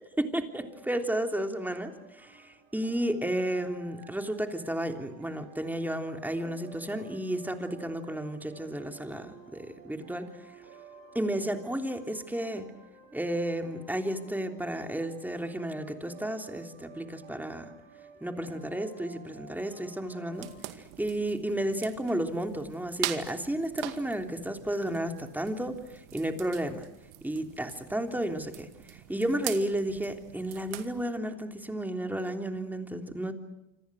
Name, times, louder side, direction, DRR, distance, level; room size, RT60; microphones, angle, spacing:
voice 1, 0.2-10.6 11.1-12.7 13.1-17.7 18.2-26.9 27.2-33.3, right 1 dB, 5° right, 5 dB, 3.3 m, -32 dB
sound 1, 0.6-20.5, right 5 dB, 55° right, 7.6 m, -53 dB
sound 2, 20.3-31.0, right 15 dB, 80° right, 2.3 m, -43 dB
28.0 x 26.0 x 6.4 m, 0.93 s
supercardioid pair, 110°, 41 cm